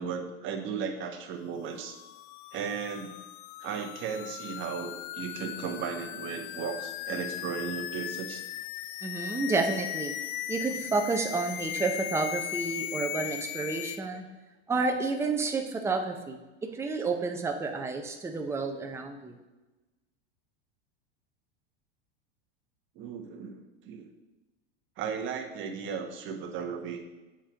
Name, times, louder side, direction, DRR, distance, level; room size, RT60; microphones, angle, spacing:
voice 1, 0.0-2.0 2.5-3.1 3.6-8.4 23.0-24.1 25.0-27.1, right 6 dB, 40° right, 4 dB, 1.1 m, -36 dB
sound 1, 1.7-14.0, left 13 dB, 55° left, 0.5 m, -38 dB
voice 2, 9.0-10.1 10.5-14.3 14.7-16.4 16.7-19.4, right 3 dB, 10° right, 4 dB, 0.6 m, -30 dB
7.3 x 4.4 x 5.0 m, 1.1 s
supercardioid pair, 120°, 30 cm